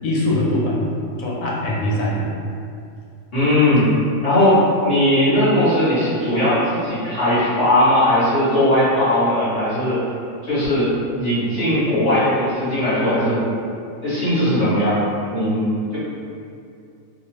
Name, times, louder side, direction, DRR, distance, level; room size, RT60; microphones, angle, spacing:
voice 1, 0.0-2.3 3.7-3.9, left 1 dB, 80° left, -4 dB, 1.1 m, -22 dB
voice 2, 3.3-3.9 4.2-10.0 10.4-10.9 11.2-13.4 14.0-15.0 15.3-16.0, left 1 dB, 55° left, -13 dB, 1.5 m, -18 dB
2.9 x 2.4 x 3.0 m, 2.5 s
omnidirectional pair, 1.4 m